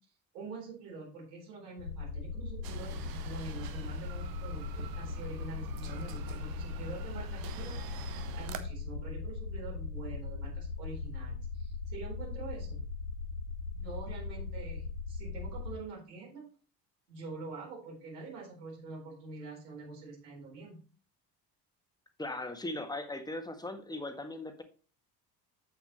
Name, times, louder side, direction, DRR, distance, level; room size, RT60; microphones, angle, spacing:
voice 1, 0.3-8.1 8.4-12.8 13.7-16.5 17.1-20.8, right 3 dB, 70° right, -3 dB, 4.5 m, -45 dB
sound 1, 1.8-15.7, left 4 dB, 85° left, 2.5 m, -39 dB
sound 2, 2.6-8.6, right 9 dB, 45° right, 1.2 m, -46 dB
voice 2, 22.2-24.6, left 2 dB, 10° left, 7 dB, 1.6 m, -38 dB
8.4 x 8.1 x 3.0 m, 0.38 s
figure-of-eight pair, 60°, 49 cm